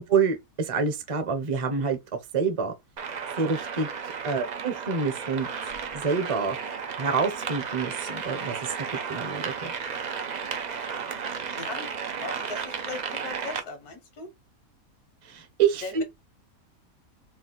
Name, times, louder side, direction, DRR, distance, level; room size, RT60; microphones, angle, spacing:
voice 1, 0.0-2.0 2.3-2.7 3.3-6.6 7.0-9.7 15.2-16.0, right 5 dB, 35° right, 0.6 m, -27 dB
sound 1, 3.0-13.6, right 6 dB, 85° right, 0.4 m, -34 dB
voice 2, 11.5-11.9 12.2-14.3 15.8-16.0, left 3 dB, 80° left, 1.6 m, -39 dB
4.4 x 2.3 x 3.8 m
omnidirectional pair, 1.6 m